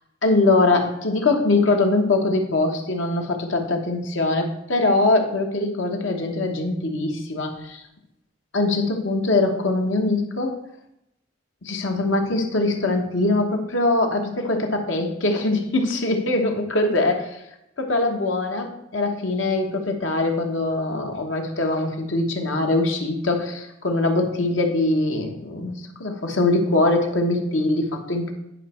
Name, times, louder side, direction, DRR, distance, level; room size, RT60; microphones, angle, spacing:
voice 1, 0.2-7.8 8.5-10.6 11.6-17.4 17.8-28.3, left 2 dB, 80° left, 3 dB, 1.3 m, -22 dB
10.0 x 5.2 x 4.4 m, 0.82 s
head